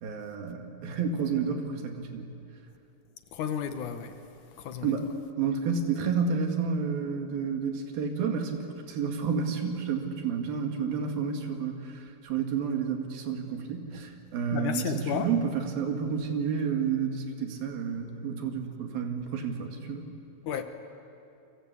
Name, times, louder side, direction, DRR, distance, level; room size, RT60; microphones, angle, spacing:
voice 1, 0.0-2.3 4.8-5.0 5.4-20.0, right 6 dB, 80° right, 3.9 m, -30 dB
voice 2, 3.3-4.2 4.6-5.1 13.9-14.0 14.5-15.3 20.4-20.6, left 8 dB, 70° left, 2.4 m, -32 dB
30.0 x 23.0 x 8.3 m
omnidirectional pair, 4.1 m